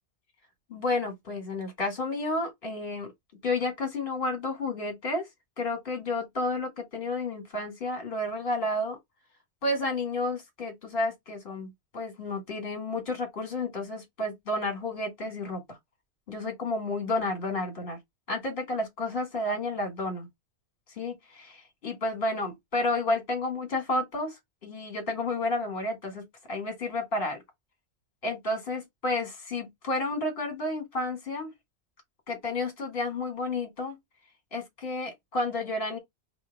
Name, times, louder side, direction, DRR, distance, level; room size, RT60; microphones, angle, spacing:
voice 1, 0.7-3.1 3.4-5.3 5.6-9.0 9.6-15.8 16.3-18.0 18.3-20.3 21.0-24.4 24.6-27.4 28.2-31.5 32.3-34.0 34.5-36.0, left 2 dB, 55° left, 1.8 m, -31 dB
3.1 x 3.0 x 4.4 m
omnidirectional pair, 1.1 m